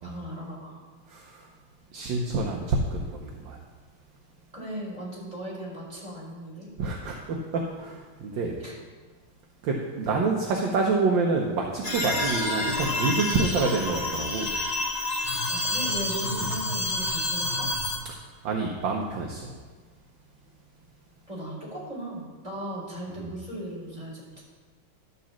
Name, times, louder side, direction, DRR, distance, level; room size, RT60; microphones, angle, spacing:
voice 1, 0.0-0.8 4.5-6.7 8.6-8.7 15.5-17.7 21.3-24.4, right 1 dB, 15° right, -6 dB, 3.8 m, -37 dB
voice 2, 1.1-1.5 1.9-3.6 6.8-8.5 9.6-14.6 16.3-16.5 18.1-18.2 18.4-19.6 23.1-23.3, right 3 dB, 65° right, 0 dB, 1.4 m, -28 dB
sound 1, 11.8-18.0, left 2 dB, 25° left, 0.9 m, -28 dB
12.0 x 4.1 x 7.2 m, 1.4 s
omnidirectional pair, 2.4 m